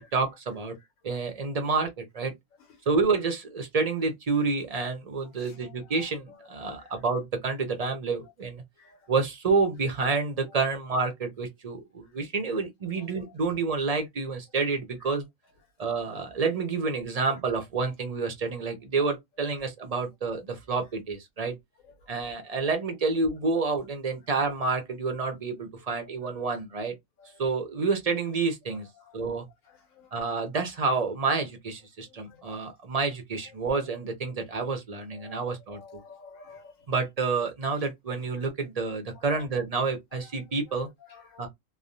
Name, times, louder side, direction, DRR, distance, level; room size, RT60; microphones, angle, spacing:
voice 1, 0.1-0.7 1.0-2.3 2.9-8.6 9.1-15.2 15.8-21.5 22.1-26.9 27.4-28.9 29.1-29.4 30.1-35.8 36.9-40.9 41.4-41.5, right 4 dB, 45° right, 0.5 m, -29 dB
voice 2, 5.4-6.0 6.8-6.9 8.8-9.0 12.9-13.3 22.1-22.3 26.0-26.1 27.2-27.3 28.8-29.3 30.0-30.1 32.2-32.4 35.2-36.7 39.2-39.4 40.2-40.4 41.1-41.4, left 5 dB, 85° left, 1.3 m, -51 dB
3.0 x 2.0 x 2.6 m
omnidirectional pair, 1.3 m